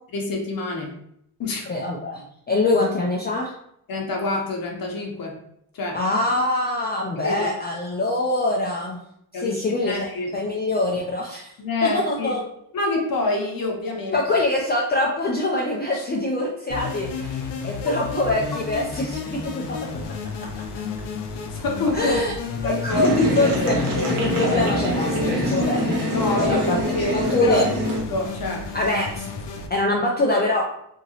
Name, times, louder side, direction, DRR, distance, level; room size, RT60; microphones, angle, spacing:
voice 1, 0.1-0.9 1.4-1.7 3.9-5.4 5.7-6.0 7.2-7.5 9.3-10.3 11.6-12.3 12.7-14.2 15.9-16.0 17.8-17.9 21.5-22.2 22.5-23.1 26.1-27.7 28.1-29.0, left 2 dB, 55° left, 0 dB, 0.7 m, -27 dB
voice 2, 1.7-3.5 5.9-9.0 9.3-10.1 10.3-11.5 11.8-12.4 14.1-19.8 21.9-22.3 22.6-26.8 27.3-27.7 28.7-29.3 29.7-30.6, left 2 dB, 25° left, -3 dB, 0.3 m, -24 dB
sound 1, 16.7-29.7, left 5 dB, 85° left, 0.6 m, -32 dB
sound 2, 22.9-28.0, equal, 50° right, 0.9 m, -24 dB
2.9 x 2.7 x 2.7 m, 0.73 s
wide cardioid pair, 145°, 42 cm